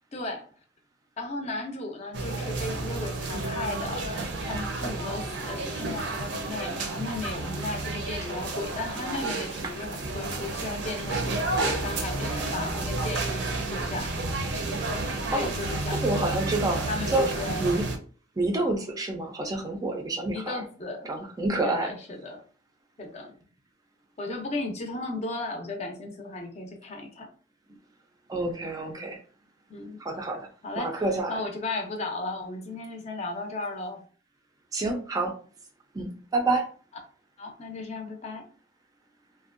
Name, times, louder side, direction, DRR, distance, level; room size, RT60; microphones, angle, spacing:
voice 1, 0.1-0.5 1.2-4.0 4.5-14.1 15.3-16.4 16.9-17.7 20.3-21.1 21.6-22.4 23.0-23.3 24.2-27.3 29.7-30.0 30.6-31.0 31.3-34.0 37.4-38.5, left 2 dB, 40° left, 3 dB, 0.5 m, -35 dB
sound 1, 2.1-18.0, right 2 dB, 80° right, 0.5 m, -31 dB
voice 2, 16.0-16.8 17.1-17.3 17.6-17.9 18.4-20.6 21.0-21.9 28.3-29.2 30.0-30.5 30.8-31.4 34.7-35.3 35.9-36.6, right 2 dB, 20° right, 3 dB, 0.4 m, -28 dB
2.5 x 2.1 x 2.4 m, 0.40 s
head